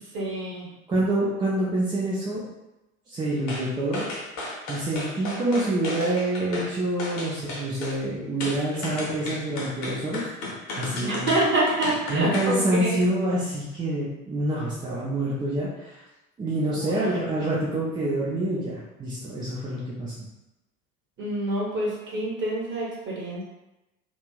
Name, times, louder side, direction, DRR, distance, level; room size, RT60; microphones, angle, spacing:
voice 1, 0.1-0.7 11.0-13.0 16.7-17.2 21.2-23.4, right 1 dB, 25° right, -4 dB, 1.1 m, -27 dB
voice 2, 0.9-2.4 3.1-4.1 4.7-10.2 10.8-11.3 12.1-16.0 16.4-20.3, right 1 dB, 10° right, -7 dB, 0.3 m, -27 dB
sound 1, 3.5-3.7 3.9-6.7 7.0-8.0 8.4-12.6 12.9-13.0, left 2 dB, 45° left, 0.9 m, -34 dB
3.2 x 2.5 x 2.3 m, 0.96 s
figure-of-eight pair, 65°, 44 cm